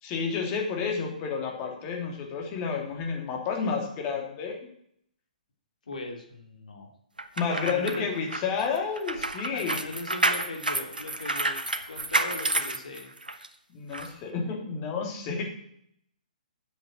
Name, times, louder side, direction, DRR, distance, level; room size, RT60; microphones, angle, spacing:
voice 1, 0.0-4.6 7.4-9.8 13.7-15.4, left 5 dB, 30° left, 1 dB, 2.9 m, -30 dB
voice 2, 5.9-6.9 7.5-8.1 9.5-11.6 11.9-13.1, left 2 dB, 65° left, 3 dB, 2.7 m, -38 dB
sound 1, 7.2-13.5 13.9-14.1, right 2 dB, 85° right, 1.1 m, -29 dB
8.2 x 8.0 x 7.7 m, 0.70 s
figure-of-eight pair, 125°, 5 cm